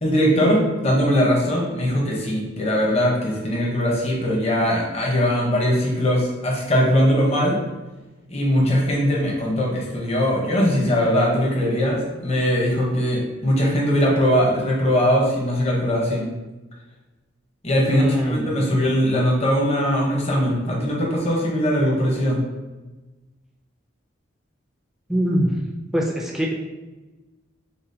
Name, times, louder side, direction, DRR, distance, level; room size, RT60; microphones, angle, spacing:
voice 1, 0.0-7.6 8.3-16.3 17.6-22.4, equal, 35° left, -2 dB, 0.9 m, -20 dB
voice 2, 17.9-18.8 25.1-25.5 25.9-26.5, equal, ahead, -2 dB, 0.4 m, -23 dB
6.8 x 2.4 x 2.7 m, 1.1 s
head